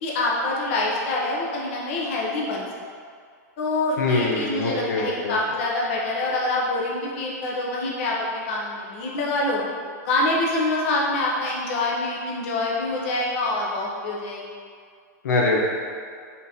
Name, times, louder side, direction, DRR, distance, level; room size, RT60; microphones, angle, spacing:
voice 1, 0.0-2.7 3.6-9.6 10.0-14.4, left 2 dB, 45° left, -4 dB, 0.8 m, -25 dB
voice 2, 4.0-5.3 15.2-15.6, left 3 dB, 80° left, -2 dB, 0.7 m, -23 dB
3.8 x 3.7 x 2.8 m, 2.1 s
supercardioid pair, 160°, 9 cm